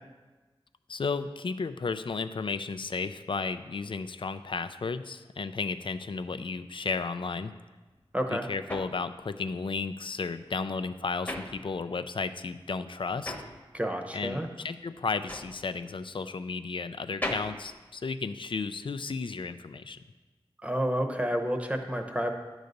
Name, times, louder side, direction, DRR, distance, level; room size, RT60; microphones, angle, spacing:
voice 1, 0.9-7.5 8.3-13.4 14.1-20.0, left 4 dB, 60° left, 11 dB, 0.4 m, -33 dB
sound 1, 7.9-12.2 12.5-18.7, left 1 dB, 20° left, 1.0 m, -40 dB
voice 2, 8.1-8.5 13.7-14.5 20.6-22.3, equal, 15° right, 5 dB, 0.9 m, -30 dB
10.5 x 4.0 x 6.6 m, 1.2 s
wide cardioid pair, 75°, 10 cm